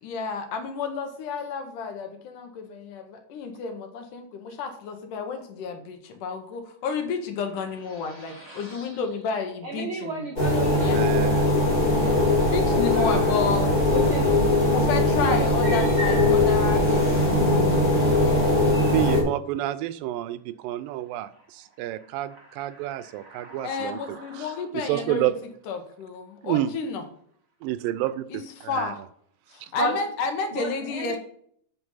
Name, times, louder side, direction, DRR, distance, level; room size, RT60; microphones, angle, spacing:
voice 1, 0.0-10.3 10.8-11.0 12.4-13.8 14.7-17.4 23.6-25.3 25.7-27.0 28.3-29.0 29.5-31.2, left 5 dB, 70° left, 6 dB, 2.5 m, -31 dB
voice 2, 7.9-9.0 9.6-11.0 12.1-13.4 13.9-14.3 15.3-16.0 18.0-18.2 21.3-21.5 21.8-24.6 29.8-29.9 30.5-31.2, right 2 dB, 65° right, 0 dB, 1.3 m, -35 dB
sound 1, 10.4-19.2, left 2 dB, 15° left, 2.1 m, -21 dB
voice 3, 10.9-11.5 18.9-21.3 21.8-24.0 24.9-25.3 26.4-26.7 27.6-28.4 28.7-28.9, right 13 dB, 85° right, 14 dB, 2.3 m, -28 dB
7.9 x 6.1 x 5.5 m, 0.63 s
omnidirectional pair, 4.0 m